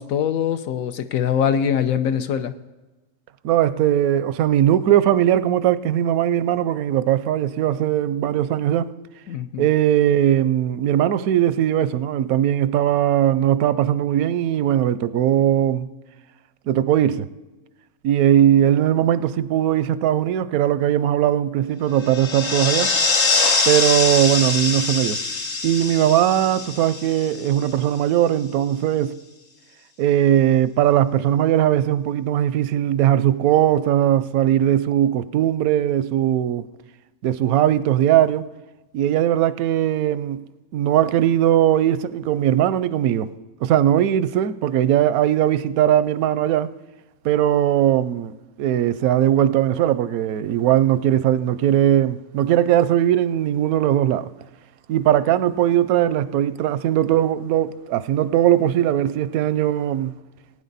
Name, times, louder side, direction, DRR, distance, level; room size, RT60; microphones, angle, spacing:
voice 1, 0.0-2.5 9.3-9.7, left 8 dB, 75° left, 1.1 m, -23 dB
voice 2, 3.4-8.9 9.6-15.9 16.7-17.3 18.0-22.9 23.7-25.2 25.6-29.2 30.0-36.7 37.2-38.5 38.9-40.4 40.7-43.3 43.6-46.7 47.2-54.3 54.9-60.1, right 11 dB, 85° right, 1.0 m, -19 dB
sound 1, 22.0-27.8, left 4 dB, 50° left, 1.6 m, -23 dB
19.0 x 9.6 x 4.0 m
omnidirectional pair, 1.5 m